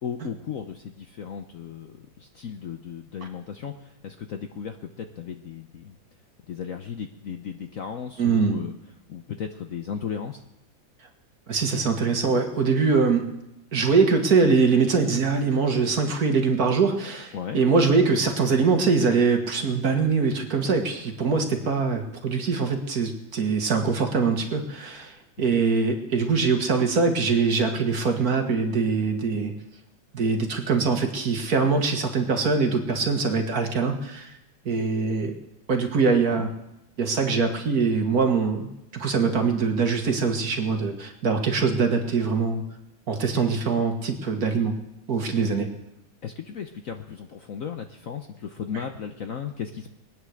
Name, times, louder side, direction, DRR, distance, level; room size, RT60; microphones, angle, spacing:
voice 1, 0.0-6.0 6.5-8.7 9.1-10.4 17.3-17.6 25.4-25.6 36.0-36.5 46.2-49.9, left 7 dB, 60° left, 6 dB, 0.9 m, -35 dB
voice 2, 8.2-8.6 11.5-13.2 13.7-29.5 30.1-34.3 34.7-35.3 35.7-36.5 37.0-42.6 43.1-44.7 45.1-45.7, right 4 dB, 50° right, 4 dB, 1.9 m, -23 dB
21.5 x 9.3 x 6.4 m, 0.85 s
omnidirectional pair, 2.1 m